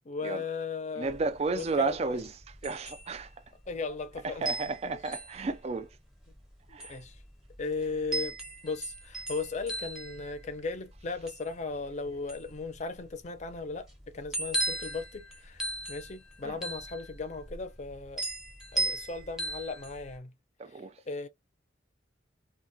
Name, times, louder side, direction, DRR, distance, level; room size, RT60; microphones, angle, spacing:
voice 1, 0.0-1.2 1.5-2.2 3.7-5.0 6.7-7.2 7.6-8.4 8.6-18.3 18.7-20.3 21.1-21.3, left 4 dB, 40° left, 0.5 m, -37 dB
sound 1, 1.0-20.2, right 2 dB, 5° right, 0.8 m, -38 dB
voice 2, 1.0-3.3 4.2-5.9 6.7-7.0 16.4-16.6 20.6-21.0, right 4 dB, 35° right, 0.3 m, -33 dB
2.2 x 2.2 x 2.6 m
head